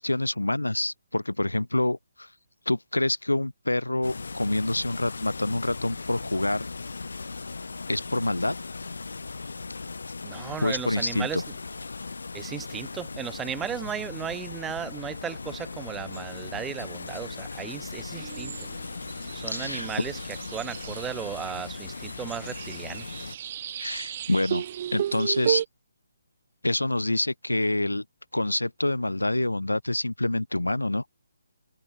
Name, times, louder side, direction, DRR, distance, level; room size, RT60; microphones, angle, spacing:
voice 1, 0.0-2.3 2.7-6.7 7.9-8.5 10.6-11.4 19.5-19.9 23.8-24.6 24.9-25.6 26.6-28.0 28.3-31.0, left 1 dB, 80° left, 0.6 m, -27 dB
sound 1, 4.0-23.4, left 4 dB, 65° left, 2.6 m, -38 dB
voice 2, 10.2-11.4 12.3-18.5 19.3-20.2 20.5-23.1, right 8 dB, 10° right, 0.4 m, -35 dB
sound 2, 18.1-25.6, right 10 dB, 35° right, 1.6 m, -34 dB
figure-of-eight pair, 140°, 0 cm